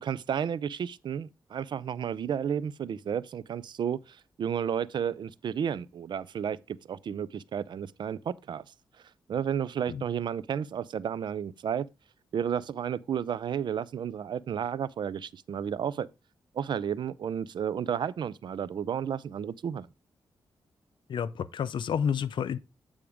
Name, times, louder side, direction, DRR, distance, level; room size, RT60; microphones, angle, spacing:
voice 1, 0.0-8.7 9.3-11.9 12.3-16.1 16.5-19.9, right 8 dB, 65° right, 0.4 m, -32 dB
voice 2, 21.1-22.6, left 7 dB, 75° left, 0.5 m, -30 dB
8.6 x 3.5 x 4.9 m
cardioid pair, 100°, 8 cm